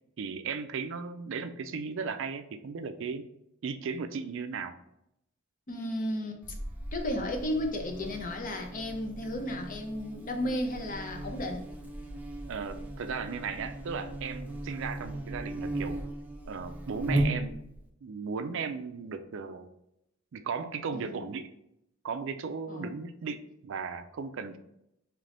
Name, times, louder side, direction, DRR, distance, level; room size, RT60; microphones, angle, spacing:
voice 1, 0.2-3.2 3.6-4.7 9.3-9.4 12.5-16.0 16.5-17.6 18.0-19.7 20.3-21.5 22.0-24.6, right 5 dB, 65° right, 9 dB, 0.4 m, -36 dB
voice 2, 5.7-6.6 6.9-11.7 20.9-21.2 22.7-23.0, left 1 dB, 40° left, 3 dB, 0.6 m, -34 dB
Buzz, 6.4-17.8, right 1 dB, 5° right, 0.5 m, -37 dB
3.3 x 3.1 x 3.8 m, 0.80 s
head